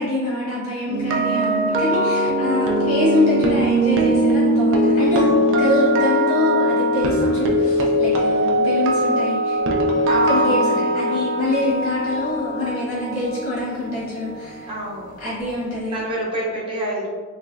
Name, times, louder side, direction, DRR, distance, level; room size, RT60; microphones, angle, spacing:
voice 1, 0.0-9.6 10.1-14.7 15.2-16.0, left 1 dB, 90° left, -8 dB, 1.4 m, -25 dB
sound 1, 0.9-14.9 15.2-15.5, equal, 60° right, 0.4 m, -20 dB
voice 2, 5.1-5.6 10.1-11.3 14.7-15.1 15.9-17.1, right 1 dB, 25° right, -5 dB, 0.7 m, -29 dB
3.3 x 2.9 x 2.5 m, 1.5 s
head